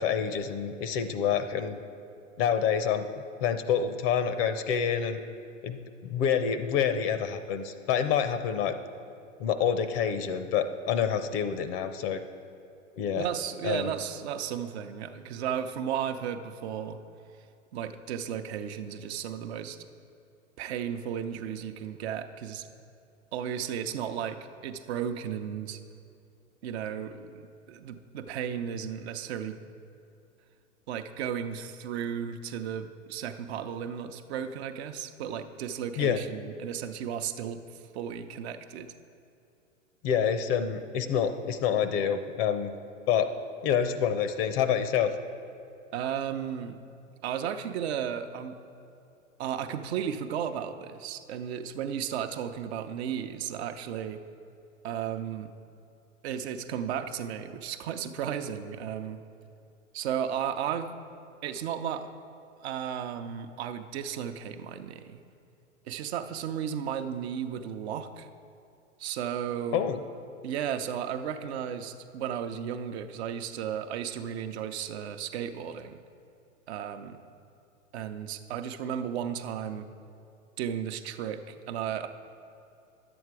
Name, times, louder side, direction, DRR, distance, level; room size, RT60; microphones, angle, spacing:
voice 1, 0.0-1.8 2.4-3.1 3.4-5.2 5.6-8.8 9.4-12.2 13.0-13.3 13.6-13.9 36.0-36.2 40.0-42.7 43.1-43.3 43.6-45.1 69.7-70.0, left 8 dB, 50° left, 10 dB, 0.7 m, -27 dB
voice 2, 13.2-17.0 17.7-19.8 20.6-22.7 23.3-25.8 26.6-29.6 30.9-37.6 37.9-38.9 45.9-46.8 47.2-48.6 49.4-54.2 54.8-55.5 56.2-59.2 59.9-60.9 61.4-62.1 62.6-65.2 65.9-68.3 69.0-69.8 70.4-76.0 76.7-77.2 77.9-79.9 80.6-82.1, right 8 dB, 55° right, 7 dB, 0.7 m, -34 dB
11.0 x 8.0 x 4.7 m, 2.6 s
hypercardioid pair, 100°, 38 cm